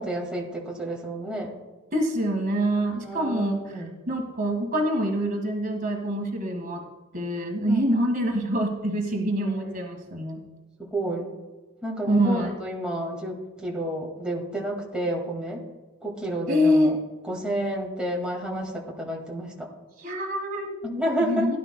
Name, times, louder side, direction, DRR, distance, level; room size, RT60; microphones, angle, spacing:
voice 1, 0.0-1.5 3.0-3.9 7.7-7.8 10.0-10.1 10.8-11.3 11.8-15.6 16.0-17.0 17.2-19.7 20.8-21.5, right 1 dB, 5° right, -3 dB, 2.0 m, -30 dB
voice 2, 1.9-6.8 7.1-10.4 12.1-12.5 16.5-16.9 20.0-20.7 21.2-21.6, equal, 45° right, 1 dB, 1.7 m, -25 dB
16.5 x 11.0 x 2.2 m, 1.2 s
head